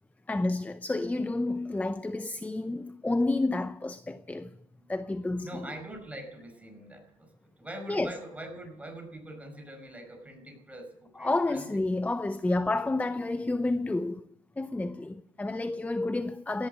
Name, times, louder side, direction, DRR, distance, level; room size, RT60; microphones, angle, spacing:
voice 1, 0.3-4.5 4.9-5.7 7.9-8.1 11.2-14.3 14.6-16.7, left 2 dB, 10° left, 0.6 m, -30 dB
voice 2, 5.4-7.3 7.6-11.7 11.9-12.0, right 1 dB, 10° right, 5.2 m, -43 dB
17.5 x 11.5 x 6.6 m
cardioid pair, 110°, 17 cm